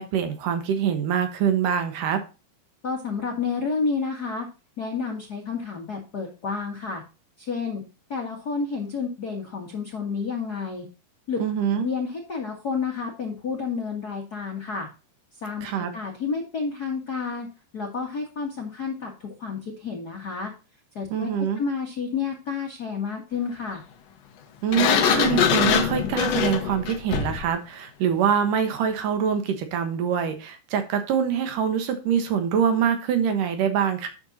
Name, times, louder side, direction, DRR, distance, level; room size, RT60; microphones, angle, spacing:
voice 1, 0.0-2.2 11.4-11.9 15.6-15.9 21.1-21.6 24.6-34.1, right 8 dB, 65° right, 7 dB, 2.5 m, -24 dB
voice 2, 2.8-4.5 4.8-7.0 7.4-7.8 8.1-10.9 11.3-11.4 11.7-14.9 15.4-17.5 17.7-20.5 20.9-23.8, left 5 dB, 55° left, 0 dB, 1.0 m, -30 dB
Sliding door, 24.7-27.5, left 7 dB, 90° left, 1.4 m, -22 dB
10.5 x 7.0 x 2.8 m, 0.31 s
omnidirectional pair, 4.7 m